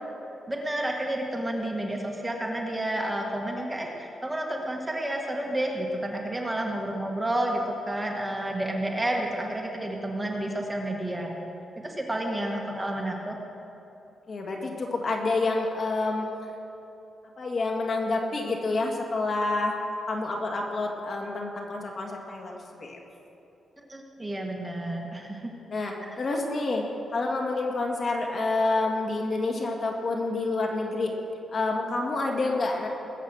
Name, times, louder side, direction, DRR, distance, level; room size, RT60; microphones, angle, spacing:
voice 1, 0.5-11.4 11.8-13.3 23.8-25.5 26.0-26.2, right 1 dB, 15° right, 0 dB, 1.6 m, -30 dB
voice 2, 14.3-16.3 17.4-19.7 20.1-23.0 25.7-26.8 27.1-31.1 31.5-32.9, left 3 dB, 45° left, 1 dB, 2.0 m, -28 dB
20.5 x 8.2 x 6.4 m, 2.9 s
wide cardioid pair, 135°, 0 cm